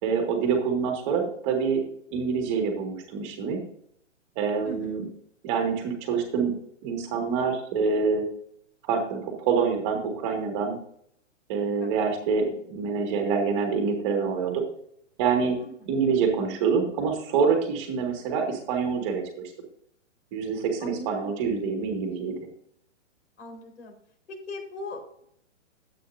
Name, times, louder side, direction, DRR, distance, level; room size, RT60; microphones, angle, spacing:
voice 1, 0.0-1.8 2.1-3.6 4.4-5.1 5.4-6.5 6.8-8.3 8.8-10.8 11.5-14.6 15.2-15.6 15.8-19.2 20.3-22.4, right 5 dB, 25° right, 3 dB, 2.2 m, -26 dB
voice 2, 4.6-5.0 11.8-12.0 15.6-15.7 20.8-21.4 23.4-23.9 24.3-25.3, left 1 dB, 70° left, 2 dB, 4.7 m, -40 dB
13.0 x 8.6 x 2.7 m, 0.68 s
hypercardioid pair, 170°, 37 cm